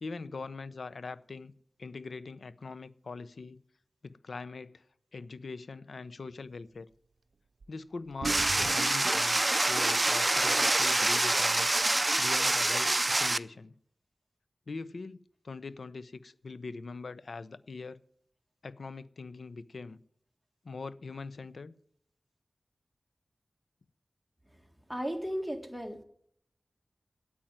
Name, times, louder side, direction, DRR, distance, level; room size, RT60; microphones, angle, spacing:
voice 1, 0.0-1.5 1.8-3.6 4.0-4.8 5.1-6.9 7.7-11.7 12.2-13.7 14.7-15.2 15.4-18.0 18.6-20.0 20.6-21.7, left 4 dB, 85° left, 0.6 m, -42 dB
sound 1, 7.6-7.7 8.1-9.1 10.1-10.2 10.8-10.9 11.1-11.5, right 4 dB, 85° right, 0.5 m, -38 dB
sound 2, 8.2-13.4, right 2 dB, 35° right, 0.5 m, -26 dB
voice 2, 24.9-26.0, equal, ahead, 1.8 m, -35 dB
8.9 x 8.7 x 9.1 m
wide cardioid pair, 65°, 0 cm